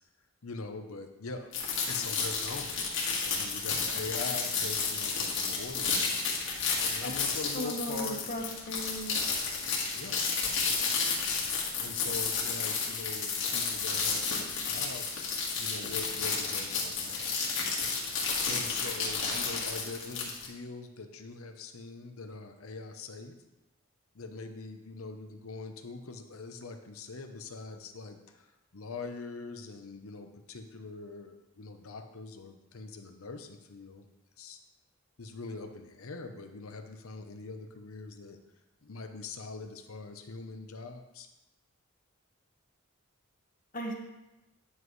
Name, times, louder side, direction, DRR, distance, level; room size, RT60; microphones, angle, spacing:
voice 1, 0.4-1.5 1.9-6.2 6.8-8.2 9.9-10.3 10.6-10.9 11.8-17.4 18.5-23.3 24.1-34.1 34.4-34.6 35.2-38.4 38.8-41.3, left 3 dB, 90° left, 6 dB, 0.8 m, -43 dB
sound 1, 1.5-20.5, left 5 dB, 65° left, 1.8 m, -32 dB
voice 2, 7.5-9.2 43.7-43.9, equal, 40° left, 1 dB, 1.3 m, -36 dB
9.9 x 7.4 x 3.2 m, 0.97 s
head